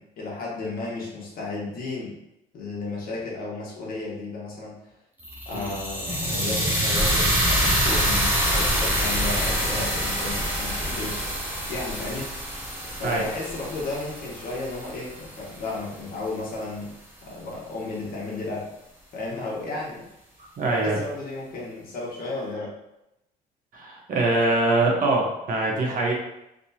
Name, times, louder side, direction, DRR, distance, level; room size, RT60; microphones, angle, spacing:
voice 1, 0.0-2.2 2.5-4.8 5.5-11.2 11.7-12.3 12.8-16.9 17.2-18.6 19.1-20.1 20.6-22.7, left 3 dB, 60° left, -4 dB, 1.3 m, -33 dB
sound 1, 5.2-15.4, equal, 10° right, 0.8 m, -26 dB
voice 2, 20.6-21.0 23.7-26.1, right 2 dB, 55° right, -1 dB, 1.1 m, -23 dB
3.5 x 2.8 x 2.8 m, 0.87 s
cardioid pair, 110°, 17 cm